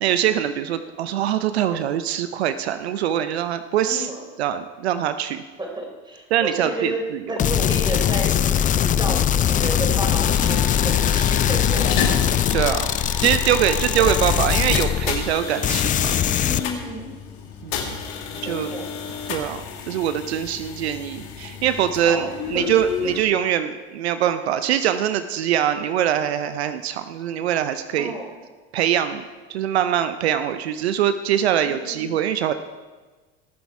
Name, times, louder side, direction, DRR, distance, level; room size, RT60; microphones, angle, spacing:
voice 1, 0.0-4.1 4.4-5.4 6.3-7.4 12.5-12.9 13.2-16.2 17.6-17.9 18.3-18.7 19.3-19.6 19.9-28.1 28.7-29.2 29.5-32.5, right 10 dB, 85° right, 11 dB, 0.6 m, -23 dB
voice 2, 3.9-4.2 5.6-12.2 14.0-14.3 16.4-17.1 18.4-18.9 22.0-22.8 23.0-23.1 28.0-28.3 31.7-32.2, right 1 dB, 15° right, 1 dB, 3.7 m, -32 dB
sound 1, 7.4-15.3 15.6-16.6, left 10 dB, 25° left, 0.4 m, -21 dB
sound 2, 10.1-23.2, left 6 dB, 75° left, 2.1 m, -31 dB
19.0 x 7.2 x 4.7 m, 1.3 s
hypercardioid pair, 85°, 31 cm